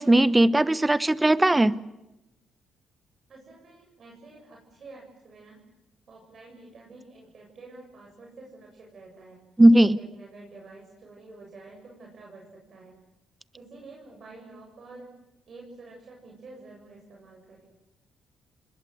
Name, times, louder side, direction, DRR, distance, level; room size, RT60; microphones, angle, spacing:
voice 1, 0.0-1.8 9.6-10.0, right 1 dB, 15° right, 17 dB, 1.1 m, -18 dB
voice 2, 3.3-5.6 6.1-9.5 9.9-13.0 13.5-15.1 15.5-17.7, right 3 dB, 50° right, -1 dB, 7.8 m, -48 dB
29.5 x 20.5 x 8.1 m, 0.93 s
cardioid pair, 90°, 0 cm